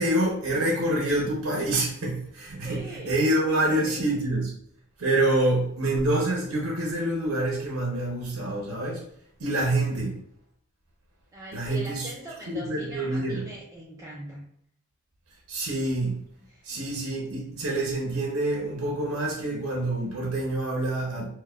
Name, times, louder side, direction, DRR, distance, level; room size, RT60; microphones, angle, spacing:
voice 1, 0.0-2.8 3.0-4.5 5.0-9.0 9.4-10.1 11.5-12.1 12.5-13.4 15.5-16.1 16.6-21.3, right 1 dB, 90° right, -2 dB, 0.8 m, -26 dB
voice 2, 2.6-3.1 3.5-4.0 5.2-5.4 11.3-14.4 16.4-16.8, right 1 dB, 15° right, -4 dB, 0.4 m, -41 dB
4.4 x 2.3 x 2.3 m, 0.67 s
head